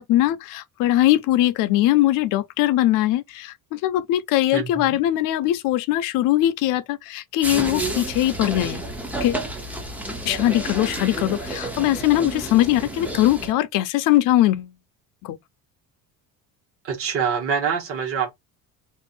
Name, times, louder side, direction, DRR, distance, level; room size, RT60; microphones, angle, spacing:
voice 1, 0.0-8.8 9.2-9.4 10.3-14.7 15.2-15.4, left 14 dB, 60° left, 0.5 m, -21 dB
voice 2, 4.5-5.0 16.8-18.3, right 7 dB, 40° right, 1.2 m, -25 dB
sound 1, 7.4-13.5, right 1 dB, 5° right, 0.4 m, -30 dB
2.6 x 2.5 x 4.1 m
cardioid pair, 180°, 37 cm